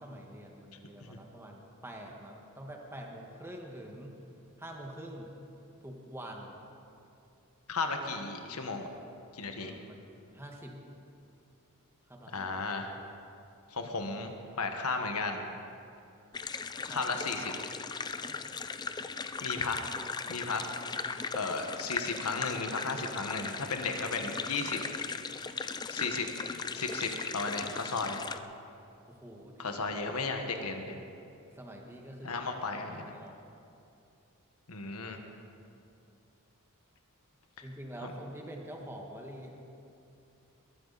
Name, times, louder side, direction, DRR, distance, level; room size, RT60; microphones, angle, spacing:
voice 1, 0.0-4.2 4.6-5.3 5.8-6.6 9.6-10.8 12.1-12.5 16.8-17.1 18.2-18.5 29.1-29.8 31.5-32.4 32.7-33.4 35.5-35.7 37.6-39.5, right 1 dB, 10° right, 0 dB, 1.6 m, -46 dB
voice 2, 7.7-8.8 9.3-9.7 12.3-12.9 13.7-14.3 14.6-15.4 16.9-17.5 19.4-19.8 20.3-20.6 21.3-24.8 25.9-26.3 26.7-28.2 29.6-31.0 32.2-33.0 34.7-35.2 38.0-38.1, left 4 dB, 85° left, 5 dB, 1.5 m, -34 dB
sound 1, 16.3-28.4, left 5 dB, 20° left, 0.4 m, -38 dB
22.0 x 13.0 x 4.1 m, 2.6 s
head